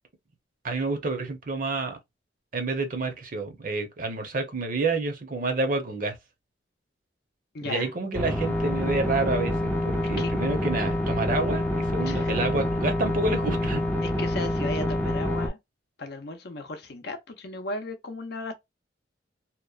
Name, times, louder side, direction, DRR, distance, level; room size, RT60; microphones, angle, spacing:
voice 1, 0.6-2.0 2.5-6.2 7.6-13.8, right 3 dB, 45° right, 0.7 m, -29 dB
voice 2, 7.5-7.9 10.2-10.3 12.0-12.4 14.0-15.6 16.0-18.5, left 2 dB, 60° left, 0.6 m, -35 dB
sound 1, 8.1-15.5, left 1 dB, 10° left, 0.5 m, -27 dB
2.9 x 2.0 x 2.3 m
head